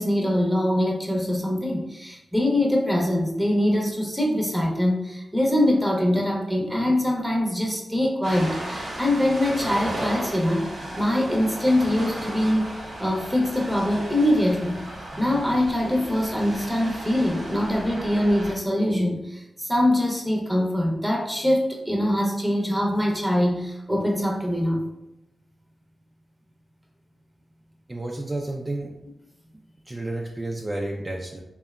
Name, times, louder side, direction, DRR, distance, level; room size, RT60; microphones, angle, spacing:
voice 1, 0.0-10.7 11.0-12.7 13.0-14.8 15.2-24.8, left 1 dB, ahead, -1 dB, 0.7 m, -23 dB
Ocean, 8.2-18.5, right 1 dB, 85° right, 0.8 m, -35 dB
voice 2, 27.9-29.0 29.8-31.4, right 2 dB, 30° right, -1 dB, 0.4 m, -31 dB
2.7 x 2.2 x 2.3 m, 0.89 s
cardioid pair, 45°, 0 cm